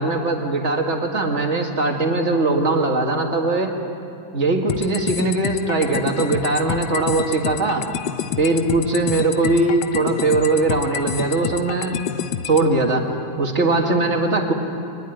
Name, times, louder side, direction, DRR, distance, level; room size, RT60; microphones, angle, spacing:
voice 1, 0.0-3.7 4.3-7.8 8.4-12.0 12.5-13.1 13.4-14.5, right 2 dB, 40° right, 2 dB, 2.3 m, -20 dB
sound 1, 4.7-12.7, left 9 dB, 80° left, 1.5 m, -28 dB
23.5 x 20.0 x 9.3 m, 2.6 s
omnidirectional pair, 1.9 m